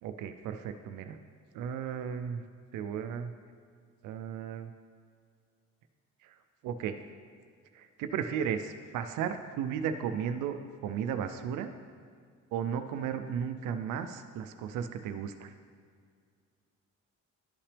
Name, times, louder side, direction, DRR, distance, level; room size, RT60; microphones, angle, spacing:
voice 1, 0.0-1.2 1.5-2.4 2.7-3.3 4.0-4.7 6.2-6.4 6.6-7.0 7.7-11.7 12.5-15.5, right 8 dB, 90° right, 9 dB, 0.5 m, -35 dB
11.5 x 5.8 x 3.3 m, 2.1 s
cardioid pair, 90°, 30 cm